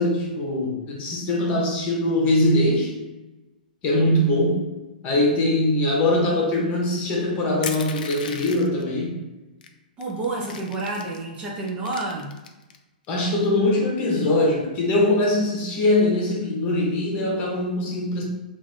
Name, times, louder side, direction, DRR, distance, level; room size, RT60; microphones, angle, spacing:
voice 1, 0.0-2.9 3.8-4.6 5.0-9.2 13.1-18.2, left 1 dB, 30° left, -1 dB, 1.0 m, -22 dB
Crushing, 7.6-8.8 9.6-9.7 10.0-11.2 11.7-12.8, left 6 dB, 65° left, 0.4 m, -36 dB
voice 2, 10.0-12.3, right 2 dB, 25° right, -3 dB, 0.6 m, -29 dB
3.0 x 2.6 x 3.9 m, 1.1 s
hypercardioid pair, 135°, 5 cm